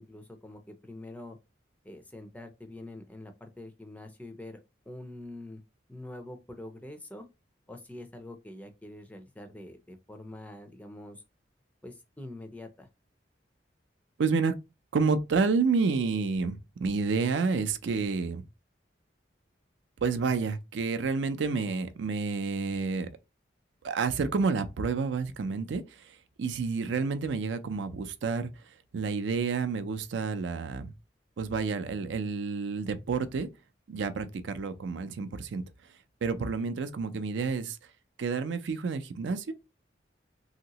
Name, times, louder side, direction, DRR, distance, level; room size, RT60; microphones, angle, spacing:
voice 1, 0.0-1.4 1.8-4.6 4.9-5.6 5.9-7.2 7.7-11.2 11.8-12.9, left 1 dB, 10° left, 0.4 m, -45 dB
voice 2, 14.2-14.5 14.9-18.4 20.0-23.1 23.8-28.5 28.9-30.9 31.4-33.5 33.9-35.6 36.2-37.8 38.2-39.5, right 4 dB, 75° right, 0.4 m, -29 dB
2.9 x 2.8 x 2.8 m
head